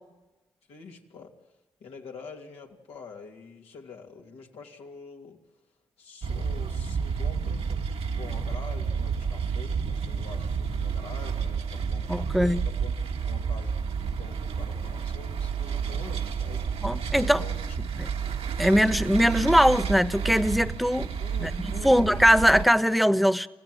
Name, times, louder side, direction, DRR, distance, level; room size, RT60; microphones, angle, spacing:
voice 1, 0.7-1.4 1.8-5.4 6.0-17.0 17.4-17.8 18.6-18.9 21.0-22.1, left 5 dB, 90° left, 2.7 m, -46 dB
sound 1, 6.2-22.6, right 6 dB, 80° right, 1.5 m, -30 dB
voice 2, 12.1-12.6 16.8-17.4 18.0-18.1 18.6-21.1 21.4-21.5 21.8-23.5, equal, ahead, 1.1 m, -21 dB
27.5 x 16.0 x 7.8 m
supercardioid pair, 45°, 10 cm